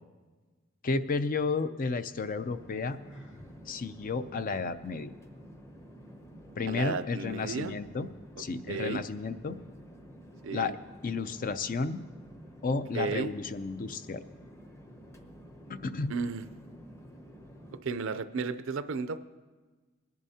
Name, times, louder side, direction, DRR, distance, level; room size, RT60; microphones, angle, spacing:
voice 1, 0.8-3.0 3.7-5.1 6.6-8.1 8.4-9.6 10.5-10.7 11.0-12.0 12.6-14.2 15.7-16.1, left 4 dB, 45° left, 11 dB, 0.5 m, -32 dB
Chatter / Fixed-wing aircraft airplane, 2.3-17.8, equal, 15° left, 0.8 m, -50 dB
Sigh, 3.0-3.6, right 1 dB, 80° left, 2.4 m, -50 dB
voice 2, 6.7-7.7 8.7-9.0 10.4-10.7 12.9-13.3 16.1-16.5 17.8-19.2, right 4 dB, 65° right, 13 dB, 0.5 m, -33 dB
21.0 x 10.5 x 2.8 m, 1.3 s
head